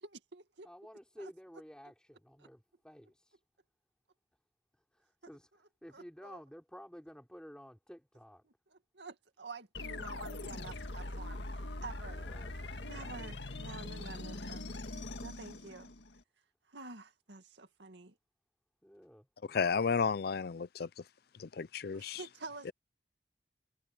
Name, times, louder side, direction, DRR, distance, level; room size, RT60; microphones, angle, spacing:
voice 1, 0.0-0.7 5.9-6.0 8.9-12.2 12.9-14.7 15.2-15.9 16.7-18.2 21.9-22.7, right 3 dB, 85° right, 2.1 m, -48 dB
voice 2, 0.6-3.4 4.9-8.5 12.1-12.5 12.8-13.3 18.8-19.7, equal, 5° left, 5.4 m, -53 dB
sound 1, 9.7-16.2, left 2 dB, 90° left, 1.9 m, -42 dB
voice 3, 19.5-20.9 21.4-22.2, left 5 dB, 60° left, 0.5 m, -32 dB
head